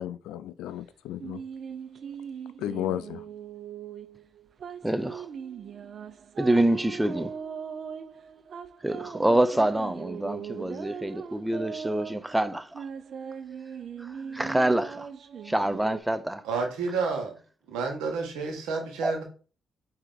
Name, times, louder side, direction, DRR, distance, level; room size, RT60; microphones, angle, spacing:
voice 1, 0.0-1.4 2.6-3.2, left 11 dB, 85° left, 0.3 m, -33 dB
sound 1, 1.2-16.0, right 7 dB, 60° right, 0.4 m, -40 dB
voice 2, 4.8-5.3 6.4-7.3 8.8-12.9 14.0-15.1 15.4-16.4 19.0-19.1, right 1 dB, 10° right, 0.5 m, -26 dB
voice 3, 16.4-17.4 17.7-19.2, right 4 dB, 85° right, 1.2 m, -30 dB
4.5 x 2.8 x 3.9 m
supercardioid pair, 65°, 0 cm